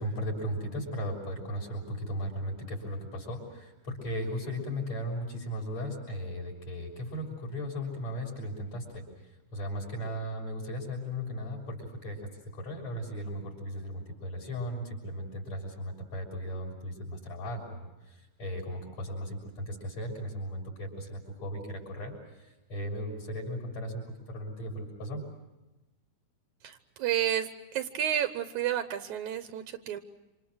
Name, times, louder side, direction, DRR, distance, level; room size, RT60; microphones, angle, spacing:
voice 1, 0.0-25.2, equal, 45° left, -2 dB, 7.2 m, -37 dB
voice 2, 26.6-30.0, right 10 dB, 70° right, 9 dB, 2.0 m, -31 dB
27.5 x 27.0 x 6.3 m, 1.1 s
omnidirectional pair, 4.3 m